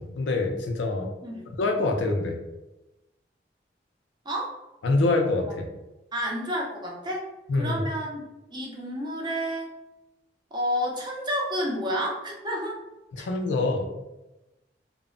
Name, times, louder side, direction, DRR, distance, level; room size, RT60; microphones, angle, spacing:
voice 1, 0.0-1.1 1.6-2.4 4.8-5.7 7.5-7.8 13.1-13.9, left 2 dB, 90° left, 4 dB, 0.4 m, -25 dB
voice 2, 6.1-7.3 7.6-8.2 8.5-9.7 10.5-12.8, equal, 25° right, -2 dB, 0.5 m, -30 dB
2.0 x 2.0 x 3.6 m, 0.99 s
head